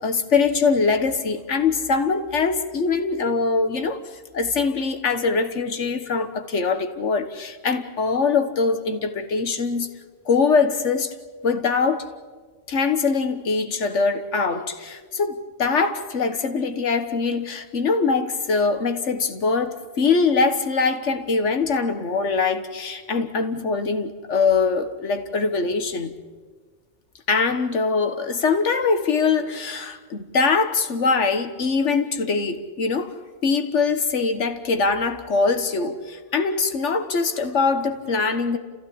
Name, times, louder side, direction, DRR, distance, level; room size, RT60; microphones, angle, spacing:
voice 1, 0.0-4.0 4.3-9.9 10.3-11.1 11.4-12.1 12.7-26.1 27.3-33.2 33.4-38.6, left 4 dB, 80° left, 1.7 m, -22 dB
30.0 x 15.0 x 8.6 m
omnidirectional pair, 1.2 m